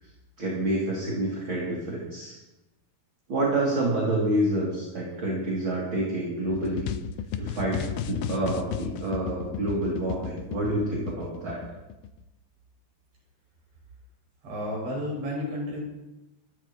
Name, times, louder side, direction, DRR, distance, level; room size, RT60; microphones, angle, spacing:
voice 1, 0.4-2.4 3.3-6.9 7.4-11.6, right 1 dB, 30° right, -5 dB, 3.3 m, -28 dB
sound 1, 6.5-12.2, left 9 dB, 80° left, 2.3 m, -33 dB
voice 2, 14.4-15.8, left 1 dB, 75° right, -4 dB, 9.2 m, -32 dB
25.5 x 12.5 x 3.2 m, 1.0 s
omnidirectional pair, 4.8 m